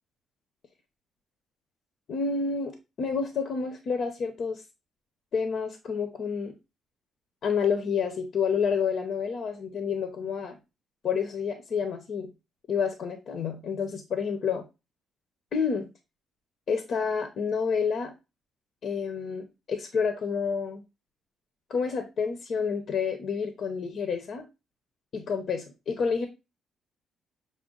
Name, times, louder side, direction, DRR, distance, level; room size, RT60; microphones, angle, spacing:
voice 1, 2.1-4.6 5.3-6.5 7.4-10.6 11.0-12.3 12.7-14.6 15.5-15.9 16.7-18.1 18.8-20.8 21.7-24.4 25.1-26.3, left 6 dB, 60° left, 6 dB, 0.8 m, -29 dB
6.2 x 2.2 x 3.8 m, 0.27 s
cardioid pair, 90°, 0 cm